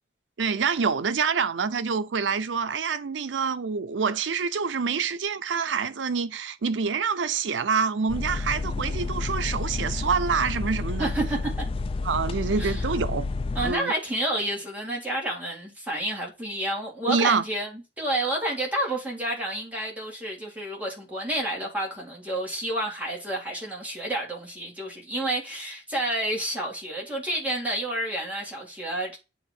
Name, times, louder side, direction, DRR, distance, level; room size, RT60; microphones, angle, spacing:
voice 1, 0.4-11.1 12.0-13.3 13.6-13.9 17.1-17.4, right 5 dB, 85° right, 0.5 m, -26 dB
sound 1, 8.1-13.7, left 3 dB, 30° left, 0.3 m, -30 dB
voice 2, 11.0-11.6 12.6-12.8 13.5-29.2, right 1 dB, 10° right, 2.0 m, -30 dB
7.9 x 3.0 x 4.8 m
head